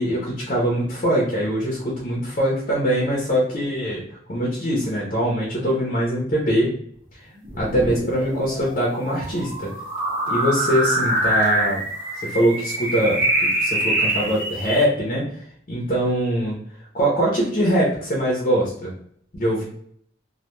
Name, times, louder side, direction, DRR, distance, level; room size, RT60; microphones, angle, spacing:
voice 1, 0.0-4.0 4.3-6.7 7.6-9.7 10.3-11.8 12.2-13.2 13.6-15.2 15.7-16.6 16.9-18.9 19.3-19.6, equal, 40° left, -3 dB, 0.6 m, -22 dB
sound 1, 7.4-14.8, right 1 dB, 25° right, 0.8 m, -24 dB
2.2 x 2.2 x 2.9 m, 0.64 s
head